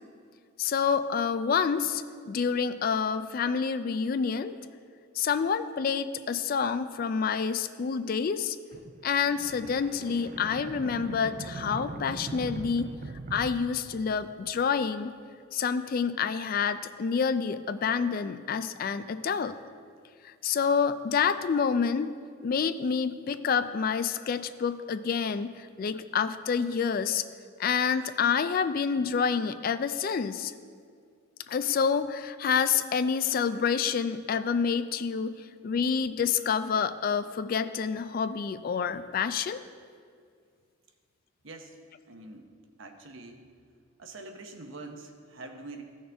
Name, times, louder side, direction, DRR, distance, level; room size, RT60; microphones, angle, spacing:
voice 1, 0.6-4.6 5.2-8.6 9.0-12.9 13.3-15.2 15.5-19.5 20.2-22.1 22.4-27.2 27.6-30.5 31.5-39.6, left 6 dB, 45° left, 12 dB, 0.3 m, -28 dB
sound 1, 8.7-14.6, right 2 dB, 40° right, 0.4 m, -41 dB
voice 2, 41.4-41.8 42.1-43.4 44.0-45.8, right 2 dB, 65° right, 5 dB, 0.9 m, -45 dB
15.0 x 6.4 x 3.4 m, 2.1 s
head